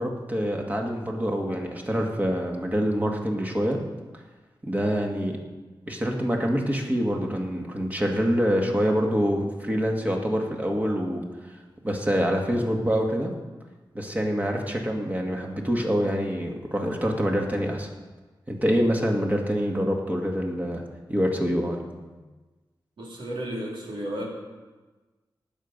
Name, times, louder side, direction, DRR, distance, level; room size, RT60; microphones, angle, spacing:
voice 1, 0.0-3.8 4.6-5.4 5.9-11.6 11.8-13.3 13.9-17.9 18.5-20.8 21.1-21.8, equal, 20° right, 1 dB, 1.9 m, -26 dB
voice 2, 23.0-24.3, right 1 dB, 75° right, -3 dB, 3.5 m, -33 dB
18.5 x 7.3 x 5.3 m, 1.3 s
wide cardioid pair, 115°, 9 cm